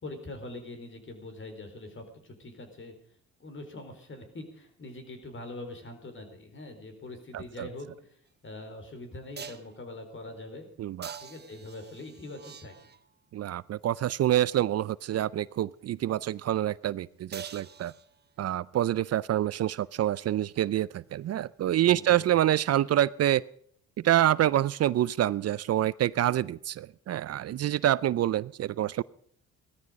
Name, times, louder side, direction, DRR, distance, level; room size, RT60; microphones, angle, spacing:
voice 1, 0.0-2.9 3.4-8.2 8.4-10.7 11.2-12.7 21.8-22.2, left 2 dB, 40° left, 6 dB, 4.5 m, -43 dB
voice 2, 7.3-7.7 10.8-11.2 13.3-17.9 18.4-23.4 24.0-29.0, right 12 dB, 55° right, 20 dB, 0.5 m, -27 dB
sound 1, 8.3-8.4 9.4-9.8 11.0-13.2 17.3-18.4 22.3-22.4, right 6 dB, 35° right, 1.2 m, -45 dB
17.5 x 13.5 x 5.2 m, 0.62 s
cardioid pair, 90°, 30 cm